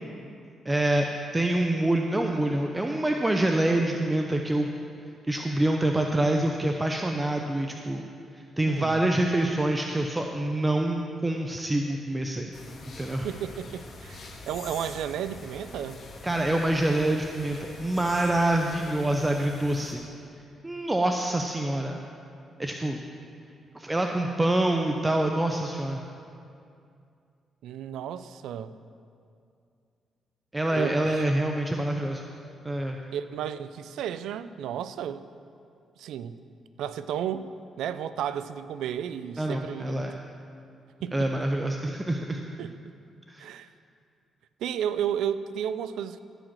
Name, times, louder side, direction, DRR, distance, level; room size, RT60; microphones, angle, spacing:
voice 1, 0.6-1.1 1.3-4.7 5.3-8.0 8.3-12.5 13.0-13.3 16.2-20.0 20.6-22.0 22.6-23.0 23.7-26.0 30.5-32.2 32.6-33.0 39.4-40.1 41.1-42.4 43.3-43.5, right 1 dB, 15° right, 2 dB, 0.7 m, -26 dB
voice 2, 8.7-9.0 13.2-16.0 27.6-28.8 30.7-31.3 33.1-35.3 36.0-36.4 36.8-37.5 37.8-40.1 41.0-41.3 42.6-42.7 43.4-43.7 44.6-46.2, right 9 dB, 85° right, 13 dB, 0.4 m, -33 dB
sound 1, 12.5-19.9, left 3 dB, 55° left, 1.7 m, -44 dB
14.0 x 5.0 x 7.4 m, 2.4 s
cardioid pair, 70°, 0 cm